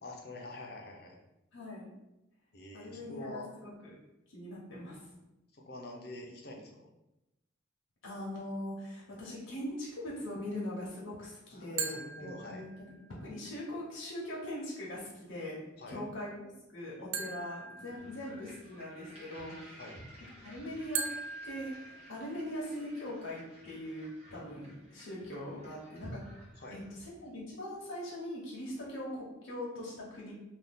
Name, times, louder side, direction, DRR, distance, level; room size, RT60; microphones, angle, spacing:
voice 1, 0.0-1.2 2.5-3.5 5.5-6.9 11.5-12.7 15.8-16.0 17.8-18.3 19.8-20.0 26.6-26.8, left 2 dB, 50° left, 1 dB, 0.5 m, -46 dB
voice 2, 1.5-1.9 2.7-4.0 4.3-5.0 8.0-12.7 13.2-19.8 20.4-21.1 21.4-26.2 26.7-30.3, left 1 dB, 85° left, -5 dB, 0.8 m, -41 dB
sound 1, 11.8-13.1 17.1-18.7 20.9-22.6, right 5 dB, 75° right, 0.4 m, -40 dB
sound 2, 17.9-27.2, equal, 30° right, 0.9 m, -53 dB
2.6 x 2.3 x 3.5 m, 0.93 s
head